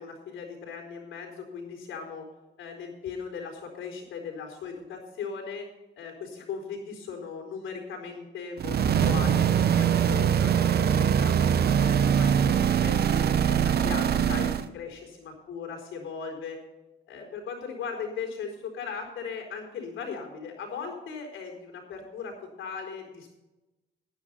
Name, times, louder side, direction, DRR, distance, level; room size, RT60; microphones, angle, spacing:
voice 1, 0.0-2.3 2.6-5.7 5.9-11.3 11.8-16.6 17.1-22.3 22.6-23.3, left 5 dB, 85° left, 1 dB, 4.5 m, -38 dB
sound 1, 8.6-14.7, right 8 dB, 55° right, 0.7 m, -23 dB
10.5 x 10.0 x 5.6 m, 1.0 s
cardioid pair, 90°, 20 cm